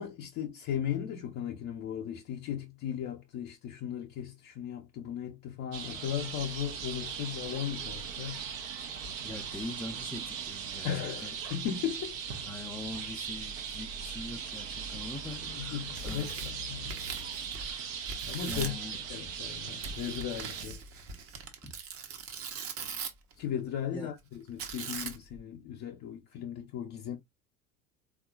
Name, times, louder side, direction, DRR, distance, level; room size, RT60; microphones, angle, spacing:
voice 1, 0.0-8.4 10.8-12.2 15.5-16.9 18.2-18.7 19.1-20.8 23.4-27.2, left 9 dB, 45° left, 0.6 m, -36 dB
sound 1, 5.7-20.7, right 6 dB, 70° right, 0.8 m, -39 dB
voice 2, 9.2-11.3 12.4-16.5 18.5-19.0 21.6-21.7 23.9-24.1, left 2 dB, 5° left, 0.4 m, -43 dB
Tearing, 15.8-17.8 18.1-18.8 19.8-23.3 24.6-25.4, right 5 dB, 35° right, 0.8 m, -41 dB
3.6 x 2.4 x 2.3 m
hypercardioid pair, 75°, 40 cm